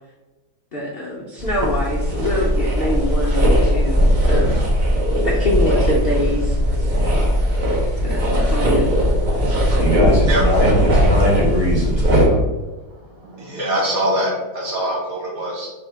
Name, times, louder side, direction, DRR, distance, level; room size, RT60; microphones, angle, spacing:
voice 1, 0.7-4.6 5.2-6.6 8.0-9.0, left 1 dB, 70° left, -3 dB, 0.5 m, -25 dB
sound 1, 1.4-12.3, equal, 80° right, 0.4 m, -18 dB
voice 2, 9.8-12.4, equal, 15° right, -7 dB, 1.1 m, -21 dB
voice 3, 12.9-15.7, right 1 dB, 55° right, -4 dB, 1.4 m, -24 dB
3.4 x 2.8 x 4.4 m, 1.1 s
omnidirectional pair, 1.9 m